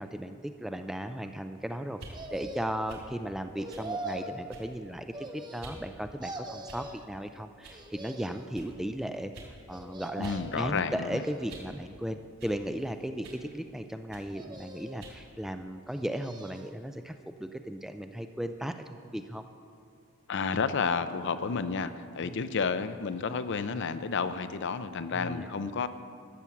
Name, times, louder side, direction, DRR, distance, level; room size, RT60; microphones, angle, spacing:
voice 1, 0.0-9.3 9.7-17.1 17.4-19.5 22.2-22.4 25.1-25.5, equal, ahead, 7 dB, 0.3 m, -36 dB
sound 1, 1.9-2.2 2.9-3.1 3.7-3.9 4.5-4.8 5.6-5.8 6.6-7.0 7.6-7.8 8.5-8.7 9.3-9.5 10.2-10.4 10.8-11.8 12.4-12.6 13.2-13.5 14.1-14.3 15.0-15.2, right 2 dB, 65° right, 3.2 m, -48 dB
sound 2, 2.1-2.9 3.6-4.4 5.1-5.9 6.2-7.1 7.7-8.5 9.7-10.6 11.2-11.9 12.5-13.3 14.3-15.1 15.8-16.8 17.2-17.3, right 1 dB, 20° right, 0.8 m, -42 dB
voice 2, 10.2-11.2 20.3-25.9, left 5 dB, 55° left, 12 dB, 0.5 m, -31 dB
12.5 x 7.3 x 7.0 m, 2.5 s
head